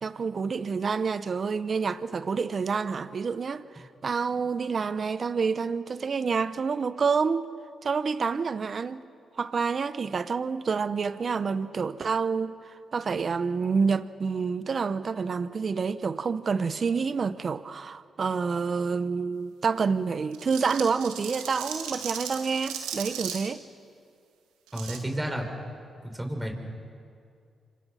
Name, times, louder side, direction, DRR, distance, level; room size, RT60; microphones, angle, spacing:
voice 1, 0.0-7.5 7.8-9.0 9.4-23.6, right 5 dB, 55° right, 1.0 m, -28 dB
sound 1, 20.3-23.5 24.7-25.0, right 8 dB, 85° right, 1.9 m, -36 dB
voice 2, 24.7-25.5 26.0-26.5, equal, 15° right, 5.7 m, -31 dB
30.0 x 25.5 x 5.8 m
hypercardioid pair, 40°, 0 cm